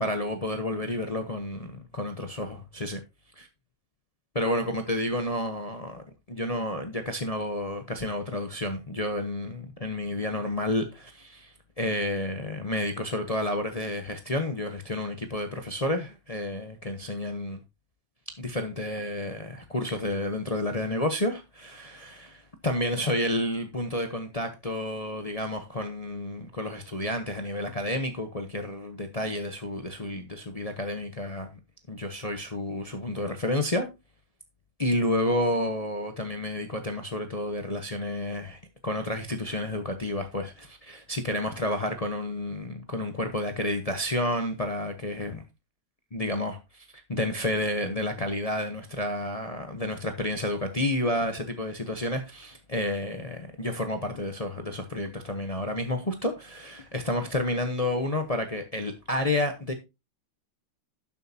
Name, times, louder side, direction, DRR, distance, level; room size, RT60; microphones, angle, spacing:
voice 1, 0.0-3.0 4.3-17.6 18.4-31.5 31.9-33.9 34.8-45.4 46.1-59.7, left 1 dB, 40° left, 0.5 m, -30 dB
12.0 x 7.4 x 2.8 m
omnidirectional pair, 2.2 m